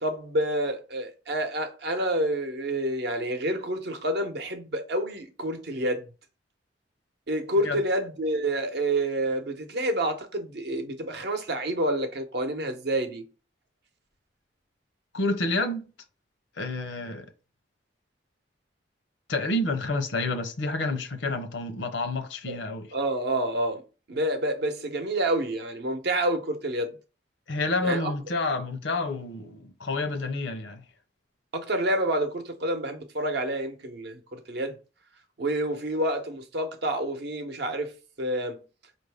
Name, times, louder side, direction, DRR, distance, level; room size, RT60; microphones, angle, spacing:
voice 1, 0.0-6.1 7.3-13.3 22.5-22.6 22.9-23.8 24.1-26.9 27.8-28.1 31.5-34.8 35.4-38.6, right 1 dB, 65° right, 0.8 m, -28 dB
voice 2, 15.1-15.9 16.6-17.3 19.3-22.9 27.5-30.8, left 2 dB, 75° left, 0.7 m, -29 dB
4.2 x 2.6 x 3.4 m
head